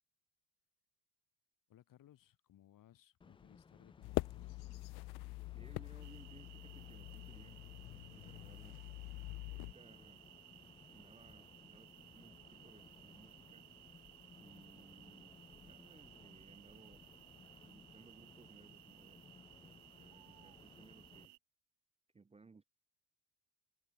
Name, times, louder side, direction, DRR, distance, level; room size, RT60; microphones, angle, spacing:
voice 1, 1.7-4.6, left 12 dB, 55° left, 2.0 m, -64 dB
sound 1, 3.2-21.3, left 5 dB, 15° left, 0.3 m, -61 dB
sound 2, 4.0-9.7, left 22 dB, 70° left, 0.6 m, -44 dB
voice 2, 5.5-8.8 9.5-10.3 10.9-13.7 14.4-17.0 17.6-19.3 19.6-21.4 22.1-22.6, right 4 dB, 15° right, 0.8 m, -62 dB
sound 3, 6.0-21.4, right 22 dB, 80° right, 1.6 m, -60 dB
cardioid pair, 110°, 40 cm